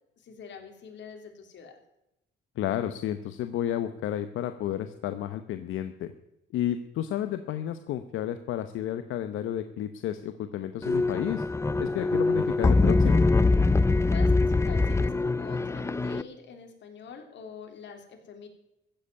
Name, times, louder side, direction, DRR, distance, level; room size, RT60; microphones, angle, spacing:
voice 1, 0.2-1.8 14.1-18.5, left 6 dB, 65° left, 4 dB, 3.3 m, -45 dB
voice 2, 2.6-6.1 6.5-11.5 11.8-13.3, left 11 dB, 85° left, 10 dB, 0.9 m, -31 dB
sound 1, 10.8-16.2, left 3 dB, 15° left, 0.6 m, -23 dB
15.5 x 7.9 x 9.5 m, 0.87 s
cardioid pair, 90°, 20 cm